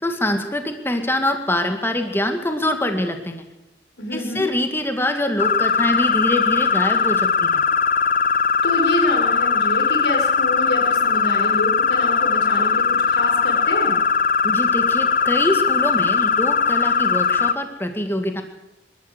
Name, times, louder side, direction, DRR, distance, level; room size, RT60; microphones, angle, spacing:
voice 1, 0.0-3.4 4.1-7.6 14.4-18.4, left 1 dB, 10° left, 6 dB, 2.0 m, -24 dB
voice 2, 4.0-4.5 8.6-14.0, left 1 dB, 65° left, 3 dB, 5.8 m, -27 dB
sound 1, 5.4-17.5, left 5 dB, 45° left, 0.9 m, -19 dB
25.0 x 13.5 x 8.3 m, 1.0 s
head